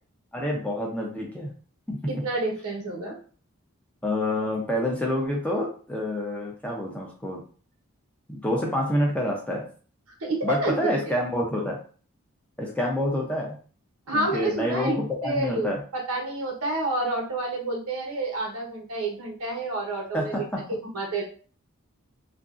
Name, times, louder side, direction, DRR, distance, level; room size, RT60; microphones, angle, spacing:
voice 1, 0.3-1.5 1.9-2.0 4.0-7.4 8.3-9.6 10.4-11.8 12.6-13.6 14.1-15.8 20.1-20.6, left 1 dB, 5° left, -1 dB, 0.5 m, -27 dB
voice 2, 2.1-3.2 10.2-10.9 14.1-20.3 20.7-21.2, right 2 dB, 85° right, -1 dB, 1.0 m, -29 dB
2.8 x 2.5 x 2.4 m, 0.41 s
head